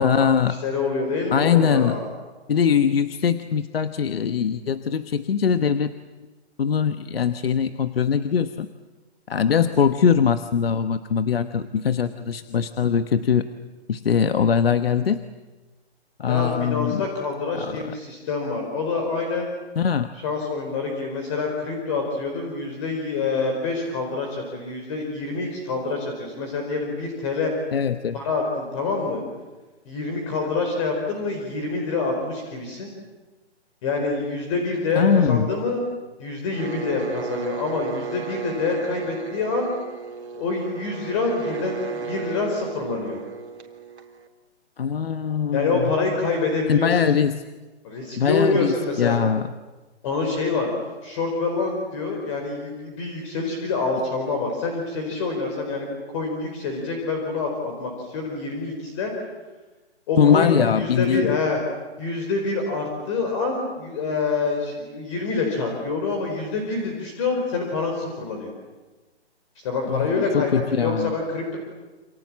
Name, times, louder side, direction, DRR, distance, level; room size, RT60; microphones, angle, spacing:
voice 1, 0.0-0.6 1.3-2.0 2.5-5.9 6.6-8.7 9.3-13.5 13.9-15.2 16.2-17.0 17.5-17.8 19.8-20.1 27.7-28.2 34.9-35.5 44.8-45.9 46.7-47.4 48.2-49.5 60.2-61.4 69.9-71.1, left 7 dB, 60° left, 9 dB, 1.3 m, -21 dB
voice 2, 0.6-2.1 9.6-9.7 16.3-19.5 20.2-27.5 28.1-29.2 29.9-32.9 33.8-35.8 36.2-39.7 40.3-43.2 45.5-47.0 47.8-49.1 50.0-50.7 51.0-59.1 60.1-61.6 62.0-68.5 69.6-71.6, left 3 dB, 30° left, 2 dB, 4.6 m, -26 dB
sound 1, 36.5-44.3, right 5 dB, 75° right, 3.7 m, -34 dB
28.0 x 28.0 x 7.5 m, 1.2 s
hypercardioid pair, 165°, 34 cm